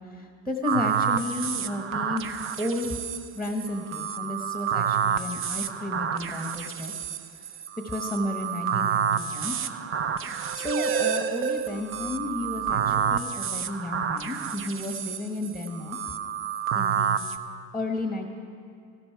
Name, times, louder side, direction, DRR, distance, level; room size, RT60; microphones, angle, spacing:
voice 1, 0.1-2.9 3.3-6.9 7.8-9.5 10.5-16.0 16.7-17.2 17.7-18.3, left 2 dB, ahead, 3 dB, 1.1 m, -32 dB
sound 1, 0.6-17.4, right 8 dB, 30° right, 0.6 m, -29 dB
15.0 x 12.5 x 4.6 m, 2.4 s
hypercardioid pair, 100°, 41 cm